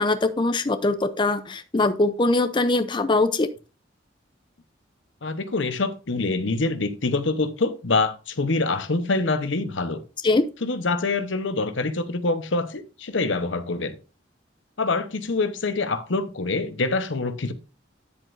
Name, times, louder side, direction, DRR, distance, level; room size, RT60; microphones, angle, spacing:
voice 1, 0.0-3.5 10.2-10.5, left 2 dB, 25° left, 0.6 m, -22 dB
voice 2, 5.2-10.0 10.6-14.0 14.8-17.5, left 3 dB, 85° left, 1.0 m, -25 dB
10.0 x 7.7 x 2.6 m
head